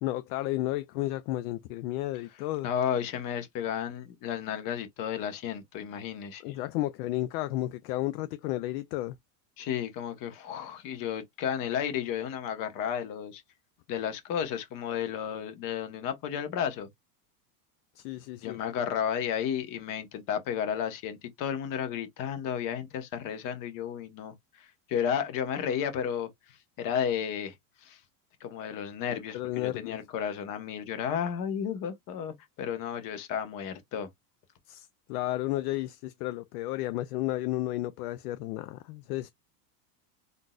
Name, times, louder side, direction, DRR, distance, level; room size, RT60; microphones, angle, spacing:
voice 1, 0.0-2.7 6.4-9.2 18.0-18.6 29.1-30.0 34.7-39.3, left 16 dB, 65° left, 0.5 m, -32 dB
voice 2, 2.6-6.6 9.6-13.4 13.9-16.9 18.4-27.5 27.8-28.0 28.4-34.1, left 8 dB, 40° left, 1.1 m, -33 dB
3.8 x 2.5 x 2.3 m
supercardioid pair, 135°, 49 cm